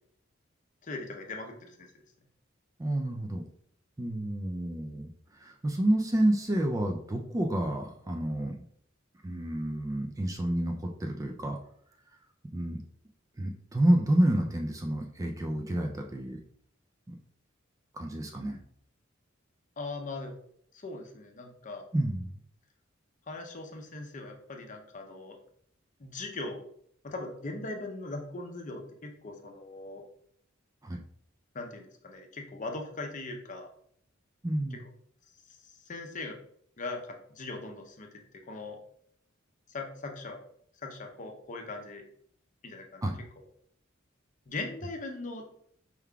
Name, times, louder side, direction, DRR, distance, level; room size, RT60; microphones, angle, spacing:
voice 1, 0.8-1.9 19.8-20.4 20.7-21.8 23.3-25.4 26.0-26.6 27.0-30.0 31.5-33.7 35.5-35.6 35.9-36.4 36.8-38.8 39.7-40.4 40.8-42.0 42.6-43.0 44.5-45.5, left 2 dB, 40° left, 3 dB, 0.6 m, -40 dB
voice 2, 2.8-3.4 4.0-5.1 5.3-8.5 9.2-11.6 12.5-12.8 13.4-16.4 17.1-17.2 17.9-18.6 21.9-22.3 30.8-31.0 34.4-34.8 43.0-43.2, right 1 dB, 15° right, 3 dB, 0.3 m, -29 dB
4.6 x 3.6 x 2.3 m, 0.65 s
head